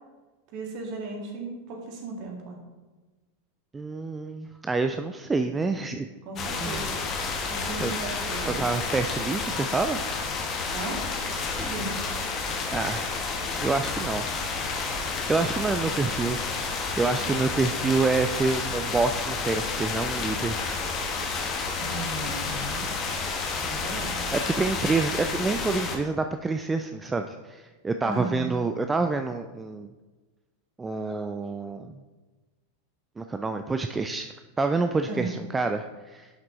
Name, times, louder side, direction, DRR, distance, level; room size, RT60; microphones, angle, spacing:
voice 1, 0.5-2.6 6.3-7.0 7.5-8.6 10.7-11.0 11.6-11.9 17.5-17.7 21.8-22.9 23.6-24.2 28.0-28.5 35.1-35.3, right 3 dB, 45° right, 1 dB, 1.8 m, -36 dB
voice 2, 3.7-6.1 6.6-6.9 7.8-7.9 8.4-10.2 11.6-11.8 12.7-13.2 13.6-14.3 15.3-16.4 17.0-20.6 24.3-29.9 30.8-31.9 33.2-36.3, right 3 dB, 15° right, 7 dB, 0.3 m, -27 dB
sound 1, 6.4-26.0, left 4 dB, 30° left, 1.2 m, -30 dB
11.0 x 5.9 x 3.1 m, 1.3 s
figure-of-eight pair, 90°, 0 cm